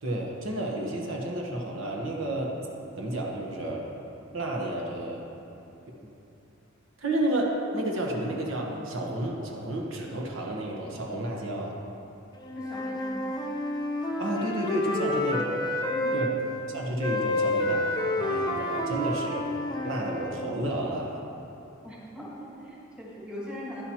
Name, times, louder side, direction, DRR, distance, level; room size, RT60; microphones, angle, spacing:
voice 1, 0.0-2.5 3.0-3.8 4.3-5.2 5.9-6.0 7.0-11.8 14.2-15.7 16.1-16.3 16.7-17.8 18.2-19.5 19.8-21.1, right 1 dB, 70° right, -1 dB, 1.2 m, -31 dB
Wind instrument woodwind instrument, 12.4-16.3 17.0-20.5, left 1 dB, 20° left, 0.7 m, -29 dB
voice 2, 12.5-13.4 15.9-16.2 21.8-23.8, equal, 5° right, -6 dB, 1.7 m, -40 dB
11.5 x 10.0 x 3.0 m, 2.9 s
head